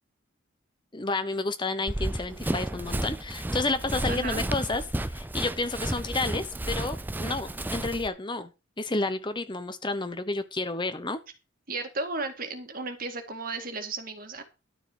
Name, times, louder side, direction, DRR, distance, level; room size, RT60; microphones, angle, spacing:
voice 1, 0.9-4.8 5.1-8.5 8.8-11.2, left 2 dB, 25° left, 11 dB, 0.9 m, -30 dB
Run, 1.9-8.1, right 1 dB, 10° right, 0.5 m, -32 dB
voice 2, 4.1-4.4 11.7-14.4, right 3 dB, 45° right, 7 dB, 2.0 m, -34 dB
12.5 x 4.8 x 6.5 m, 0.28 s
head